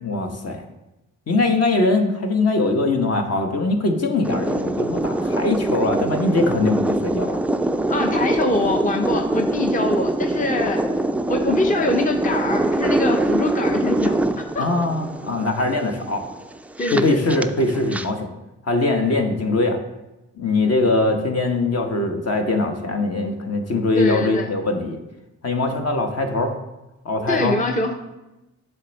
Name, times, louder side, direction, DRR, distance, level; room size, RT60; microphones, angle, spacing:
voice 1, 0.0-0.6 1.3-7.4 14.6-16.2 16.9-18.3 18.6-19.8 20.4-25.0 25.4-26.5 27.0-27.6, left 2 dB, 45° left, 4 dB, 1.1 m, -21 dB
sound 1, 4.2-18.1, right 2 dB, 5° right, 0.3 m, -24 dB
voice 2, 7.9-10.8 11.3-14.2 14.5-14.7 16.8-17.2 23.9-24.5 27.3-27.9, left 2 dB, 20° left, 3 dB, 0.7 m, -23 dB
7.2 x 3.5 x 4.1 m, 0.98 s
supercardioid pair, 45°, 36 cm